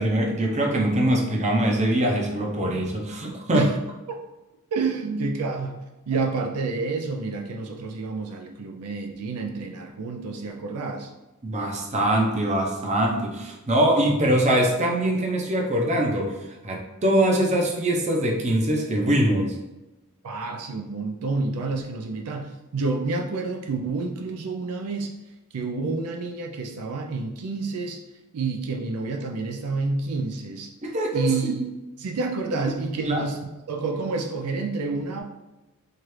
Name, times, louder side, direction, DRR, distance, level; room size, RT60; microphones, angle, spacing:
voice 1, 0.0-3.6 5.1-5.2 11.4-16.4 16.6-19.5 30.8-31.5 33.0-33.2, right 1 dB, 30° right, 0 dB, 0.6 m, -23 dB
voice 2, 4.7-5.8 6.1-11.1 20.2-25.1 25.5-28.0 28.3-30.7 31.1-31.7 32.0-35.2, right 4 dB, 75° right, 3 dB, 0.4 m, -29 dB
4.6 x 2.4 x 3.2 m, 1.0 s
head